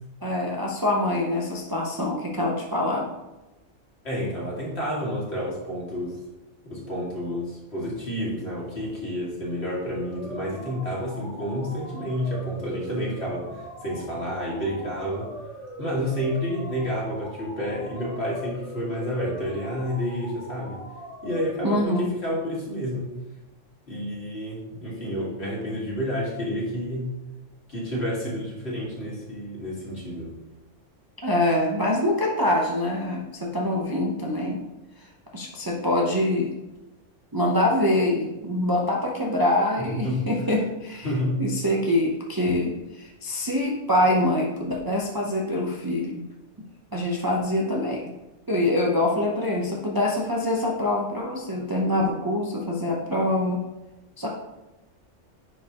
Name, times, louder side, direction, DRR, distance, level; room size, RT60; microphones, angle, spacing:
voice 1, 0.2-3.1 21.6-22.1 31.2-34.6 35.0-36.5 37.3-41.1 41.4-46.2 46.9-48.1 48.5-53.6 54.2-54.3, left 1 dB, 25° right, -2 dB, 0.6 m, -25 dB
voice 2, 4.0-6.2 6.6-15.3 15.8-20.8 21.2-23.1 23.9-27.1 27.7-30.3 39.8-40.3 41.0-41.4, equal, 55° left, -5 dB, 2.2 m, -30 dB
sound 1, 9.8-21.8, right 1 dB, 30° left, 1.0 m, -42 dB
10.0 x 4.3 x 2.9 m, 1.0 s
omnidirectional pair, 1.3 m